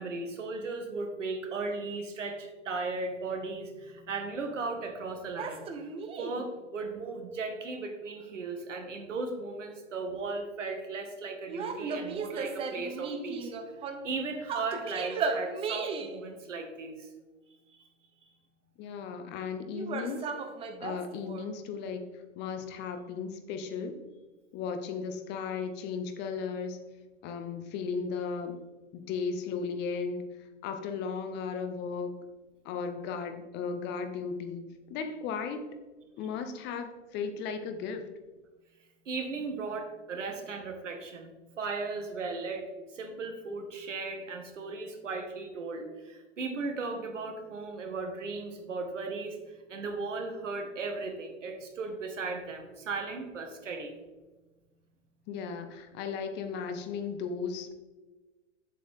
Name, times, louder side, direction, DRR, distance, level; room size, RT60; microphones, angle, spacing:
voice 1, 0.0-5.7 6.2-13.5 14.0-17.1 17.7-17.8 39.1-42.6 42.9-49.4 49.7-53.9, right 3 dB, 75° right, 5 dB, 1.7 m, -36 dB
sound 1, 5.4-6.5 11.5-14.1 14.5-16.2 19.7-21.5, right 4 dB, 15° right, 0.6 m, -35 dB
voice 2, 18.8-20.4 20.8-22.0 22.4-24.0 24.5-26.8 27.2-28.6 28.9-30.3 30.6-32.2 32.6-35.7 36.2-38.0 55.3-57.7, left 5 dB, 30° left, 7 dB, 0.8 m, -35 dB
7.8 x 7.5 x 3.6 m, 1.2 s
hypercardioid pair, 110°, 37 cm